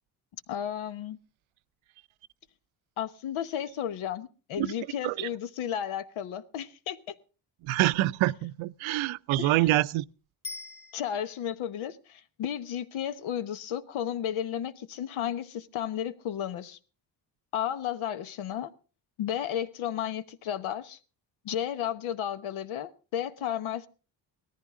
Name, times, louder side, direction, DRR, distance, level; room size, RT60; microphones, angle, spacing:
voice 1, 0.5-1.2 3.0-7.2 9.4-9.7 10.9-16.8 17.5-18.7 19.2-21.0 21.4-23.9, left 10 dB, 85° left, 1.2 m, -33 dB
voice 2, 7.6-10.0, right 16 dB, 80° right, 0.6 m, -26 dB
Bicycle bell, 10.4-11.6 20.6-20.7, left 3 dB, 20° left, 0.8 m, -43 dB
18.0 x 14.0 x 3.7 m
cardioid pair, 95°, 47 cm